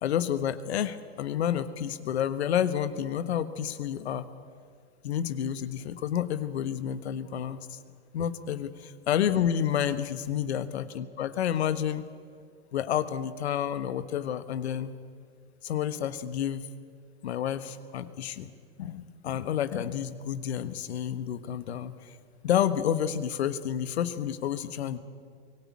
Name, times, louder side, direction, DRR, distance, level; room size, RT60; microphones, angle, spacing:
voice 1, 0.0-4.3 5.0-7.8 8.1-12.1 12.7-14.9 15.6-16.7 17.2-18.5 18.8-21.9 22.4-25.0, left 9 dB, 75° left, 12 dB, 1.4 m, -30 dB
24.0 x 18.0 x 8.5 m, 2.1 s
hypercardioid pair, 100°, 33 cm